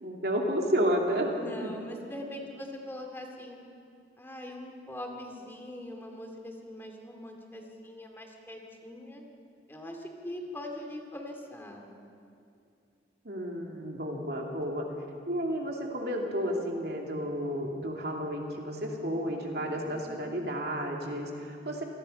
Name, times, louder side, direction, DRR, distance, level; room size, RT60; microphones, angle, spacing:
voice 1, 0.0-1.3 1.6-1.7 13.2-14.9 15.3-21.8, equal, 65° right, 0 dB, 2.7 m, -31 dB
voice 2, 1.3-3.6 4.2-9.2 9.7-11.9 19.6-20.2, left 1 dB, 15° left, 2 dB, 2.3 m, -42 dB
27.0 x 18.5 x 5.6 m, 2.5 s
head